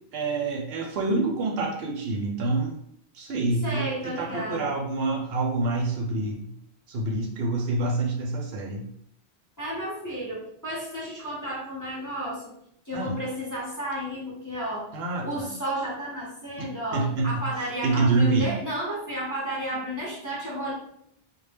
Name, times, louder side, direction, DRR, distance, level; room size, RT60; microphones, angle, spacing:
voice 1, 0.1-2.7 3.1-6.5 6.9-8.9 12.9-13.2 14.9-15.5 16.6-17.4 17.8-18.5, right 3 dB, 75° right, 0 dB, 0.8 m, -27 dB
voice 2, 3.6-4.7 9.6-12.4 12.9-14.9 15.2-20.7, equal, 25° left, -6 dB, 0.5 m, -32 dB
2.1 x 2.0 x 3.3 m, 0.73 s
omnidirectional pair, 1.1 m